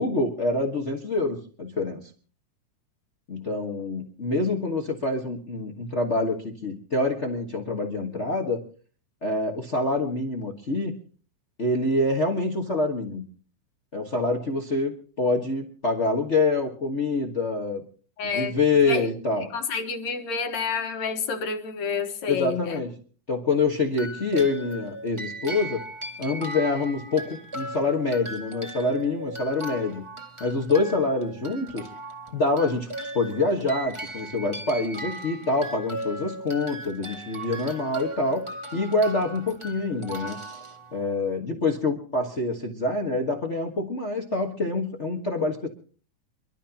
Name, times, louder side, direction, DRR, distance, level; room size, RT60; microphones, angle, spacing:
voice 1, 0.0-2.0 3.3-8.6 9.2-11.0 11.6-13.2 13.9-17.8 18.3-19.5 22.3-22.9 23.3-25.8 26.2-30.0 30.4-31.8 32.3-32.9 33.1-38.5 38.7-40.4 40.9-45.7, left 3 dB, 45° left, 0.9 m, -26 dB
voice 2, 18.2-19.1 19.5-22.8, left 5 dB, 65° left, 2.5 m, -29 dB
sound 1, 23.9-41.3, right 1 dB, 15° right, 1.2 m, -37 dB
28.0 x 12.5 x 2.9 m
omnidirectional pair, 3.6 m